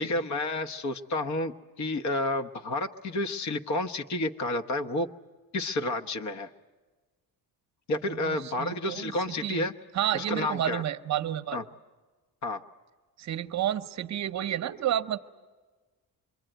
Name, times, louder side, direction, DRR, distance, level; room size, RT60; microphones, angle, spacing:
voice 1, 0.0-5.1 5.5-6.5 7.9-9.7 10.1-10.8 11.5-11.6 12.4-12.6, left 2 dB, 50° left, 7 dB, 1.1 m, -30 dB
voice 2, 8.1-9.1 9.4-9.6 9.9-11.6 13.2-15.2, right 11 dB, 50° right, 10 dB, 0.8 m, -30 dB
26.0 x 23.0 x 9.0 m, 1.3 s
cardioid pair, 165°, 36 cm